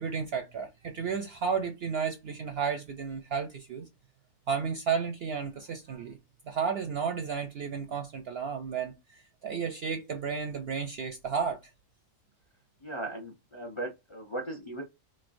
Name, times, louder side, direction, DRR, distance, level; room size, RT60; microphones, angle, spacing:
voice 1, 0.0-3.9 4.5-6.2 6.4-11.6, right 6 dB, 60° right, 0.6 m, -33 dB
voice 2, 12.8-14.8, right 2 dB, 30° left, 0.6 m, -37 dB
3.8 x 3.1 x 2.5 m
omnidirectional pair, 1.5 m